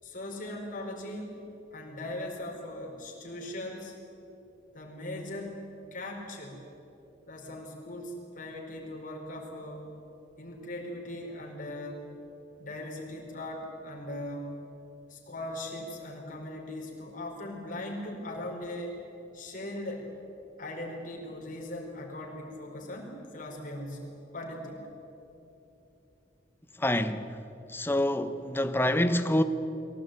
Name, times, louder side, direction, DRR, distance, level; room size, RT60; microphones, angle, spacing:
voice 1, 0.0-1.4 1.7-4.0 4.7-5.6 5.9-6.6 7.3-9.9 10.4-12.1 12.6-14.5 15.1-19.0 19.3-20.1 20.6-24.8, left 1 dB, 50° left, 4.7 m, -39 dB
voice 2, 26.8-27.3 27.7-29.4, left 1 dB, 10° left, 1.0 m, -26 dB
23.0 x 17.5 x 9.1 m
head